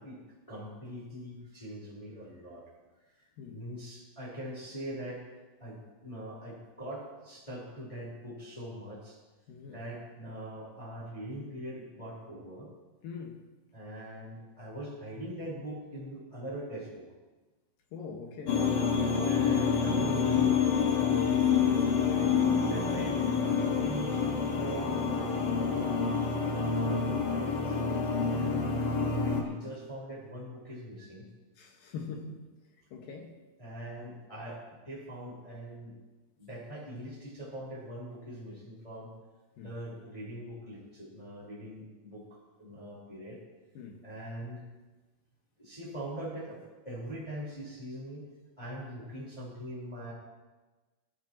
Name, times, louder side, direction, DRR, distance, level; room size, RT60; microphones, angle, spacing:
voice 1, 0.0-2.7 3.0-5.2 5.6-9.2 9.7-12.7 13.7-17.0 19.2-20.7 22.1-25.0 25.5-26.2 26.8-27.8 28.4-31.3 33.6-35.9 36.4-39.1 39.6-43.4 44.0-44.6 45.6-48.3 48.6-50.1, right 1 dB, 10° left, -6 dB, 4.0 m, -42 dB
voice 2, 9.5-9.8 13.0-13.4 17.9-18.6 21.1-21.4 28.2-28.4 31.6-32.4 32.9-33.3 39.6-39.8 43.7-44.0, left 5 dB, 75° left, 2 dB, 3.1 m, -43 dB
sound 1, 18.5-29.4, left 6 dB, 55° left, 1.2 m, -27 dB
23.5 x 13.0 x 3.0 m, 1.2 s
omnidirectional pair, 4.3 m